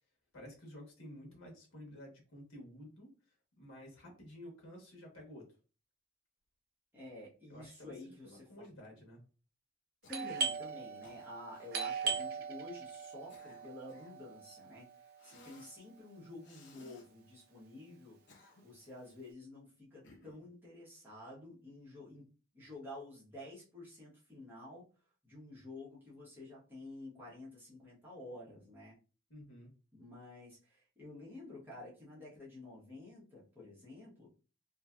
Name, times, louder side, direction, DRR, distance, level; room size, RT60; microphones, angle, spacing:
voice 1, 0.3-3.1 3.6-5.5 7.5-9.2 29.3-29.7, equal, 80° left, 1 dB, 1.2 m, -52 dB
voice 2, 6.9-8.7 10.1-18.2 18.6-22.3 22.5-24.9 25.2-29.0 29.9-34.3, left 2 dB, 10° right, -8 dB, 1.1 m, -50 dB
Cough, 10.0-10.5 11.0-11.7 12.1-12.3 13.0-14.2 15.2-15.8 16.4-17.1 18.0-18.9 20.0-20.5, left 2 dB, 60° left, 0.6 m, -60 dB
Doorbell, 10.1-15.5, right 5 dB, 45° right, 0.4 m, -40 dB
2.8 x 2.7 x 2.4 m, 0.35 s
head